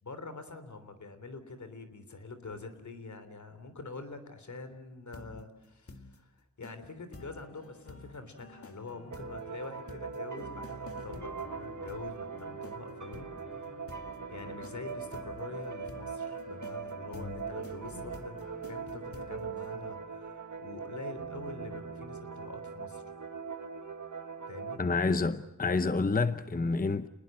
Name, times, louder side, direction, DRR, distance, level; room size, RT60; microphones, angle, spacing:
voice 1, 0.0-13.3 14.3-23.0 24.5-24.8, left 3 dB, 70° left, 3.4 m, -45 dB
sound 1, 5.1-5.4 5.9-6.2 6.6-6.8 7.1-19.7, left 3 dB, 50° left, 1.9 m, -49 dB
sound 2, 9.1-24.8, right 5 dB, 80° right, 2.1 m, -41 dB
voice 2, 24.8-27.1, left 3 dB, 30° left, 0.8 m, -28 dB
29.0 x 20.5 x 7.7 m
wide cardioid pair, 90°, 30 cm